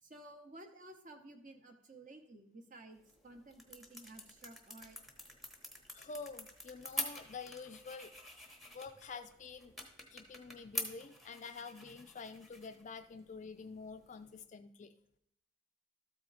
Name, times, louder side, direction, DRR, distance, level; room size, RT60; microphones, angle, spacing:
voice 1, 0.0-5.0 9.1-9.2 10.8-10.9, right 2 dB, 40° right, 6 dB, 0.8 m, -54 dB
sound 1, 2.9-14.5, left 2 dB, ahead, 0.9 m, -47 dB
voice 2, 5.9-8.1 8.7-9.7 10.1-14.9, left 4 dB, 35° left, 9 dB, 0.3 m, -48 dB
13.0 x 4.4 x 3.9 m, 0.73 s
head